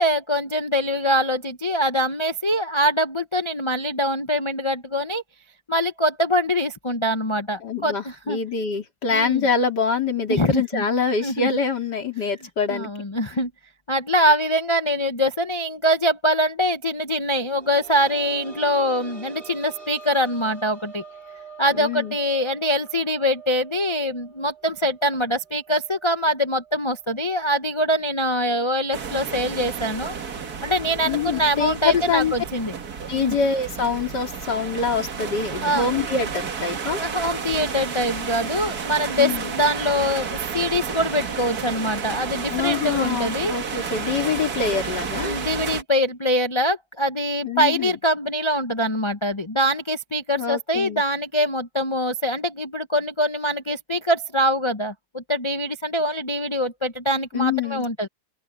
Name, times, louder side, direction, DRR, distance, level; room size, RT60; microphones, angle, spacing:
voice 1, 0.0-5.2 5.7-8.4 9.1-9.4 10.3-10.8 11.2-11.5 12.7-13.5 13.9-21.0 21.6-30.1 30.6-32.7 33.2-33.4 35.6-35.9 37.0-43.5 45.2-58.1, equal, 35° left, 0.4 m, -23 dB
voice 2, 7.6-12.9 21.7-22.2 31.1-32.3 33.1-37.0 39.2-39.5 42.5-45.4 47.4-47.9 50.4-51.0 57.3-58.1, left 5 dB, 60° left, 3.8 m, -25 dB
sound 1, 17.2-28.7 29.0-29.1 30.7-30.8, right 5 dB, 30° right, 4.3 m, -45 dB
sound 2, 28.9-45.8, right 6 dB, 55° right, 2.0 m, -31 dB
open air
omnidirectional pair, 2.0 m